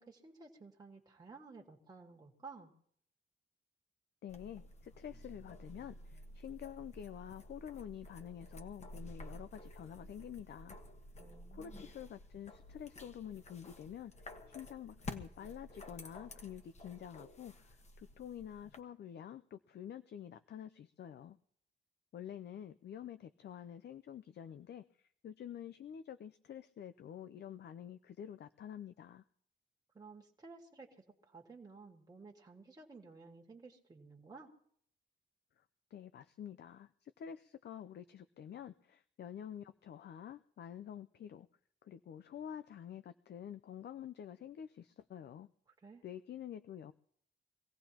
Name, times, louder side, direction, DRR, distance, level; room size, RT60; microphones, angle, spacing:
voice 1, 0.0-2.7 11.2-11.9 29.9-34.5 45.8-46.0, right 4 dB, 20° right, -1 dB, 1.8 m, -54 dB
voice 2, 4.2-10.8 11.5-14.1 14.5-21.4 22.1-29.2 35.9-41.5 41.8-45.5 46.0-46.9, left 9 dB, 65° left, 11 dB, 0.5 m, -48 dB
sound 1, 4.3-18.8, left 1 dB, 35° left, 1.3 m, -52 dB
24.0 x 17.0 x 2.9 m, 0.65 s
wide cardioid pair, 170°, 19 cm